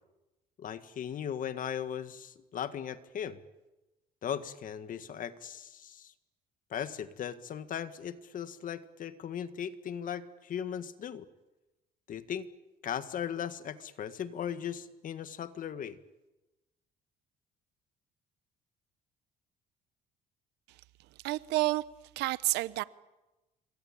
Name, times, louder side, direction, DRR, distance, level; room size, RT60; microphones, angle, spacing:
voice 1, 0.6-3.4 4.2-6.1 6.7-11.3 12.1-12.5 12.8-16.0, left 9 dB, 55° left, 1.7 m, -38 dB
voice 2, 21.2-21.8 22.2-22.8, right 19 dB, 85° right, 0.9 m, -29 dB
27.5 x 23.5 x 8.7 m
cardioid pair, 110°, 17 cm